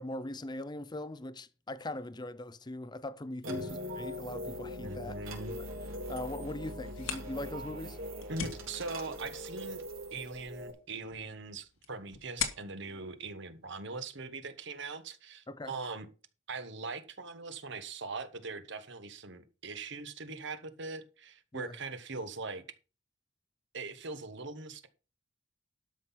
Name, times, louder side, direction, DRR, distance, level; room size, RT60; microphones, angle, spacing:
voice 1, 0.0-5.2 5.5-5.7 6.1-8.0 15.5-15.8 21.5-21.8, left 1 dB, 20° left, 0.6 m, -40 dB
sound 1, 3.4-10.7, equal, 80° right, 3.8 m, -41 dB
voice 2, 4.8-5.5 8.3-9.8 10.1-16.1 16.5-22.6 23.7-24.9, right 3 dB, 60° right, 1.3 m, -41 dB
sound 2, 6.8-14.3, left 8 dB, 85° left, 1.8 m, -44 dB
12.5 x 5.8 x 5.7 m
head